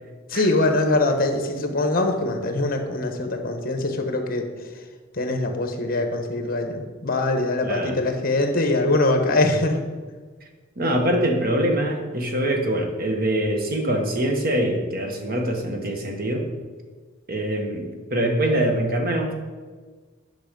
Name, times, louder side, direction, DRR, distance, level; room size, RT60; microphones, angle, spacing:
voice 1, 0.3-4.5 5.1-9.8, left 2 dB, 45° left, 5 dB, 1.2 m, -23 dB
voice 2, 7.6-8.0 10.8-16.5 17.3-19.3, right 1 dB, 50° right, 3 dB, 1.3 m, -24 dB
10.0 x 6.0 x 5.2 m, 1.4 s
head